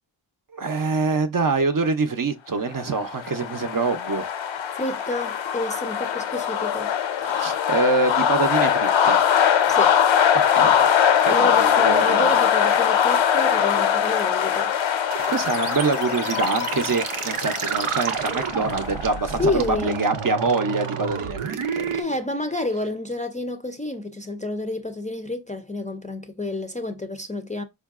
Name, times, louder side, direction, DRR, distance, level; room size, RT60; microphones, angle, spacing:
voice 1, 0.5-4.3 7.3-9.2 10.3-10.9 11.2-12.3 15.3-22.0, right 3 dB, 45° right, 0.6 m, -25 dB
sound 1, 2.9-19.5, left 8 dB, 65° left, 0.6 m, -22 dB
voice 2, 4.7-6.9 9.7-10.0 11.3-14.7 19.4-20.0 21.9-27.6, left 2 dB, 15° left, 0.4 m, -29 dB
sound 2, 15.1-22.0, right 6 dB, 85° right, 0.6 m, -30 dB
4.5 x 2.5 x 2.4 m
cardioid pair, 45°, 49 cm